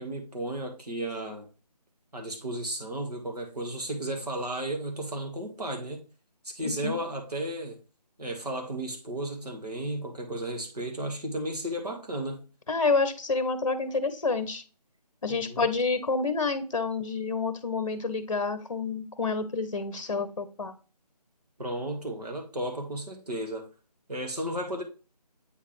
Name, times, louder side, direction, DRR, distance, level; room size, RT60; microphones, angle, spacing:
voice 1, 0.0-1.4 2.1-6.0 6.4-7.8 8.2-12.4 15.3-15.7 21.6-23.7 24.1-24.8, right 1 dB, 65° right, 1.7 m, -34 dB
voice 2, 6.6-7.0 12.7-14.6 15.2-20.7, left 4 dB, 50° left, 0.8 m, -28 dB
8.1 x 3.8 x 3.1 m
figure-of-eight pair, 155°, 21 cm